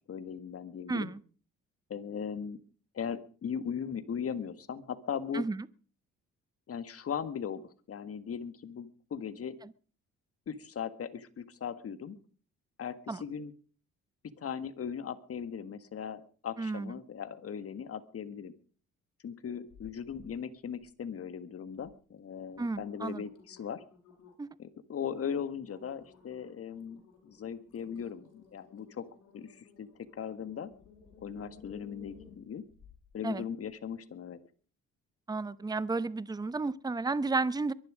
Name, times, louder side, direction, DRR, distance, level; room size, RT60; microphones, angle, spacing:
voice 1, 0.1-1.1 1.9-2.6 2.9-5.5 6.7-9.6 10.5-12.2 12.8-13.5 14.4-18.5 19.2-23.8 24.6-29.1 29.3-29.9 30.1-30.7 31.2-32.6 33.1-34.4, left 7 dB, 50° left, 12 dB, 1.7 m, -38 dB
voice 2, 0.9-1.2 5.3-5.6 13.1-13.2 16.6-16.9 22.6-23.2 24.4-24.5 33.2-33.4 35.3-37.7, right 3 dB, 15° right, 18 dB, 0.7 m, -32 dB
sound 1, 19.7-20.3 20.7-21.2 21.8-21.9 22.3-24.5 25.0-25.2 25.6-33.1 33.6-33.7, left 6 dB, 85° left, 6.8 m, -57 dB
23.0 x 11.0 x 5.0 m, 0.41 s
cardioid pair, 90°, 30 cm